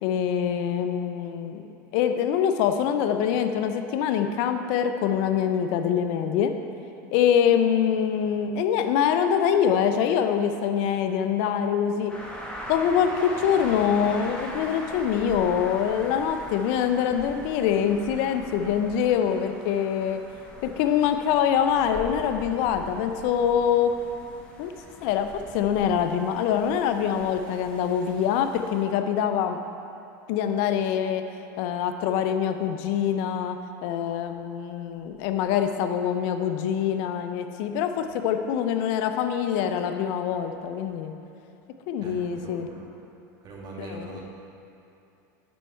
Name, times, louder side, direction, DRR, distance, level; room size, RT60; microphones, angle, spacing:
voice 1, 0.0-1.6 1.9-6.5 7.1-12.2 12.7-20.2 20.6-23.9 24.6-24.7 25.0-29.6 30.3-31.2 31.6-33.6 33.8-41.1 41.9-42.7 43.8-44.2, left 8 dB, 65° left, 7 dB, 0.5 m, -24 dB
sound 1, 12.1-28.8, equal, 10° left, 1.3 m, -41 dB
voice 2, 42.0-42.9 43.4-44.2, right 3 dB, 40° right, -2 dB, 1.7 m, -41 dB
10.5 x 4.7 x 4.4 m, 2.8 s
supercardioid pair, 115°, 11 cm